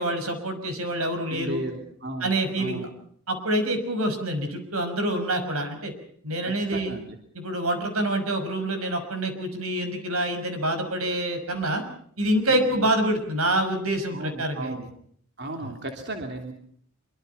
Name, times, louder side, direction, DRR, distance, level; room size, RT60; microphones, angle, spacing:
voice 1, 0.0-1.6 2.2-2.9 3.3-5.9 6.2-7.0 7.3-11.8 12.2-14.8, right 1 dB, 90° right, 8 dB, 5.9 m, -26 dB
voice 2, 1.3-2.9 6.4-7.2 12.5-12.9 14.1-14.9 15.4-16.5, right 1 dB, 50° right, 4 dB, 3.2 m, -35 dB
26.0 x 24.0 x 5.7 m, 0.62 s
head